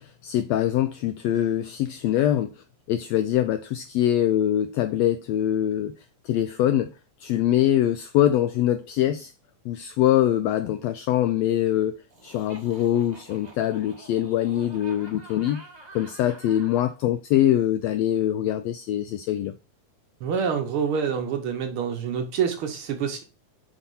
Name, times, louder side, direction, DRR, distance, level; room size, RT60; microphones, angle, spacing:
voice 1, 0.0-2.5 2.9-5.9 6.2-6.9 7.2-9.3 9.6-12.0 12.2-15.6 15.9-19.5, left 12 dB, 85° left, 1.5 m, -23 dB
Laughter, 12.1-16.9, right 2 dB, 85° right, 0.3 m, -48 dB
voice 2, 20.2-23.2, right 7 dB, 65° right, 1.4 m, -27 dB
5.8 x 4.2 x 5.4 m
omnidirectional pair, 3.5 m